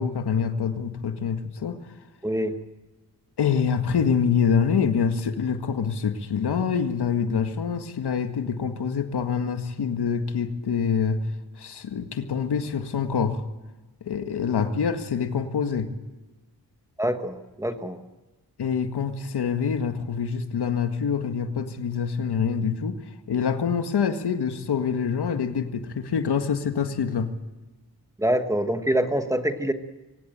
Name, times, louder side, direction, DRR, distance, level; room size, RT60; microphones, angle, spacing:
voice 1, 0.0-1.8 3.4-11.2 11.6-13.4 14.0-15.9 18.6-27.3, left 6 dB, 80° left, 7 dB, 1.9 m, -26 dB
voice 2, 2.2-2.5 17.0-18.0 28.2-29.7, right 1 dB, 10° right, 8 dB, 1.2 m, -25 dB
24.0 x 18.0 x 8.9 m, 1.1 s
wide cardioid pair, 150°, 39 cm